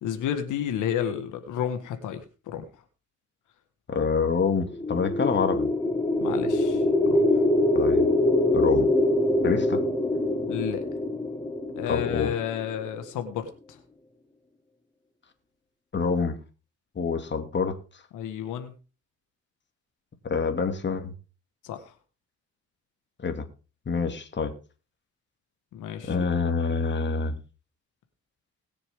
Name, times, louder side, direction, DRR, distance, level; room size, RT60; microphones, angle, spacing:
voice 1, 0.0-2.8 6.2-6.8 7.1-7.3 10.5-10.8 11.8-13.8 18.1-18.7 21.6-21.8 25.7-26.2, left 9 dB, 85° left, 7 dB, 1.7 m, -31 dB
voice 2, 3.9-5.7 7.7-8.1 8.5-8.9 9.4-9.8 11.9-12.3 15.9-16.4 16.9-17.8 20.2-21.1 23.2-23.5 23.9-24.5 26.1-27.4, left 5 dB, 40° left, 6 dB, 2.5 m, -26 dB
sound 1, 4.6-12.8, left 1 dB, 15° left, 1.5 m, -24 dB
20.5 x 7.0 x 3.7 m, 0.34 s
cardioid pair, 90°, 30 cm